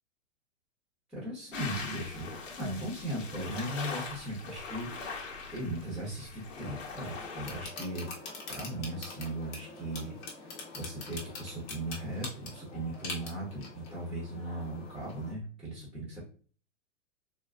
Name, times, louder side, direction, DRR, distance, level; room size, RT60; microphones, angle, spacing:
voice 1, 1.1-2.3 2.6-4.9 5.5-8.1 8.5-16.2, right 1 dB, ahead, -5 dB, 1.0 m, -38 dB
sound 1, 1.5-7.7, left 4 dB, 80° left, 1.1 m, -41 dB
sound 2, 6.7-15.3, left 3 dB, 35° left, 1.1 m, -44 dB
3.8 x 2.4 x 2.4 m, 0.41 s
hypercardioid pair, 125°, 38 cm